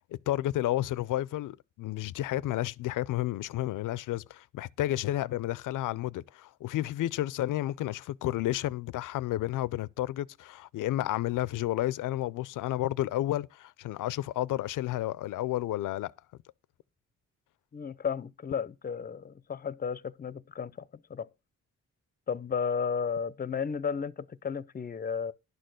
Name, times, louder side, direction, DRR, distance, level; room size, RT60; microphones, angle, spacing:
voice 1, 0.1-16.1, left 14 dB, 80° left, 0.5 m, -31 dB
voice 2, 17.7-21.3 22.3-25.3, left 6 dB, 30° left, 0.5 m, -33 dB
11.0 x 4.4 x 6.3 m
cardioid pair, 65°, 31 cm